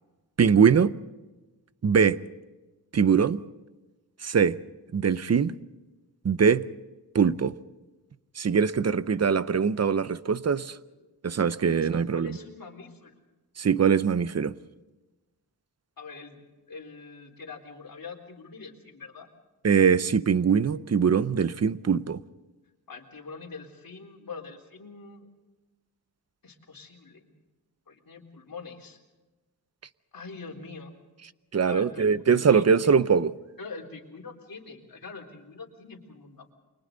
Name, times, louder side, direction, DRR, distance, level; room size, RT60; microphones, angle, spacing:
voice 1, 0.4-0.9 1.8-2.2 2.9-3.4 4.2-4.6 4.9-5.5 6.2-6.6 7.1-7.5 8.4-10.8 11.2-12.4 13.6-14.5 19.6-22.2 31.5-33.3, right 6 dB, 40° right, 0.7 m, -22 dB
voice 2, 11.8-13.1 16.0-19.3 22.9-25.3 26.4-27.3 27.9-29.0 30.1-30.9 31.6-33.1 33.6-36.5, left 4 dB, 60° left, 3.9 m, -43 dB
29.5 x 24.5 x 3.9 m
wide cardioid pair, 130°, 39 cm